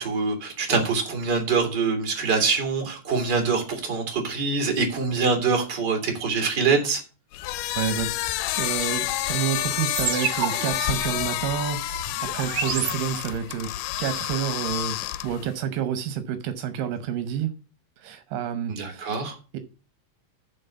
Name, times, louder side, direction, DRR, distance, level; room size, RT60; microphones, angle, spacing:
voice 1, 0.0-7.0 18.7-19.4, right 4 dB, 35° right, 2.8 m, -24 dB
sound 1, 7.3-15.5, left 15 dB, 80° left, 2.0 m, -29 dB
voice 2, 7.8-8.1 8.6-13.7 14.0-15.0 15.2-17.5 18.0-19.2 19.5-19.6, right 9 dB, 80° right, 2.5 m, -29 dB
sound 2, 10.0-13.6, right 7 dB, 60° right, 1.9 m, -31 dB
11.5 x 4.1 x 6.8 m
omnidirectional pair, 3.9 m